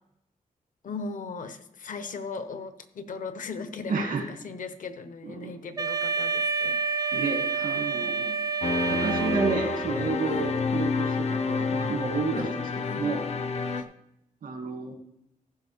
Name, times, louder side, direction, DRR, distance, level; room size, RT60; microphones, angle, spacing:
voice 1, 0.8-7.1 7.7-8.4 10.3-10.5 12.3-12.5 12.8-13.9, left 4 dB, 70° left, 9 dB, 0.9 m, -39 dB
voice 2, 3.9-4.2 5.2-5.5 7.1-8.3 8.9-12.5 12.9-13.2 14.4-14.9, right 4 dB, 85° right, 1 dB, 2.2 m, -31 dB
Wind instrument woodwind instrument, 5.8-10.0, right 5 dB, 25° right, 0.4 m, -28 dB
sound 1, 8.6-13.8, left 4 dB, 50° left, 0.6 m, -29 dB
15.0 x 6.7 x 3.5 m, 0.81 s
wide cardioid pair, 175°, 14 cm